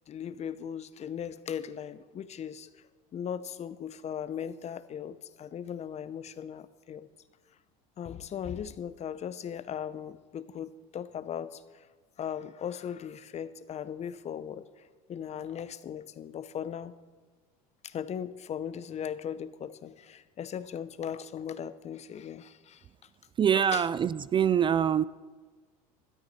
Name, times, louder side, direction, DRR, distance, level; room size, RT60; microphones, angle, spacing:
voice 1, 0.1-2.8 3.1-7.1 8.0-11.9 12.2-17.0 17.8-22.8 23.7-23.8, left 8 dB, 35° left, 15 dB, 0.8 m, -38 dB
voice 2, 23.4-25.0, right 8 dB, 25° right, 18 dB, 0.3 m, -24 dB
20.5 x 13.0 x 4.3 m, 1.4 s
hypercardioid pair, 90°, 19 cm